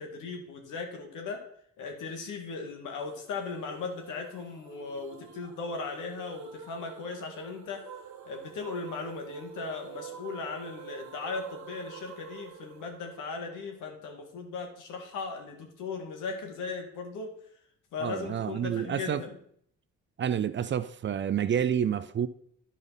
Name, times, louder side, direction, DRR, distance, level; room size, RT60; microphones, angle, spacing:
voice 1, 0.0-1.4 1.8-7.8 8.2-17.3 17.9-19.4, left 4 dB, 85° left, 1.7 m, -37 dB
sound 1, 3.0-14.0, right 8 dB, 70° right, 1.0 m, -48 dB
voice 2, 18.0-19.2 20.2-22.3, right 8 dB, 40° right, 0.5 m, -29 dB
11.0 x 5.1 x 4.1 m
cardioid pair, 90°, 30 cm